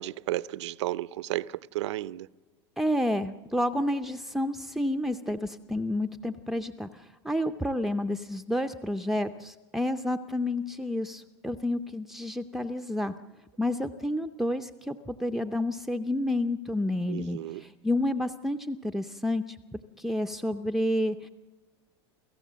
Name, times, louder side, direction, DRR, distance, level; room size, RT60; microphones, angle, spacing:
voice 1, 0.0-2.3 17.1-17.6, right 15 dB, 85° right, 0.6 m, -33 dB
voice 2, 2.8-13.1 13.6-19.6 20.0-21.3, left 1 dB, ahead, 0.6 m, -30 dB
29.0 x 15.0 x 7.5 m
supercardioid pair, 125°, 15 cm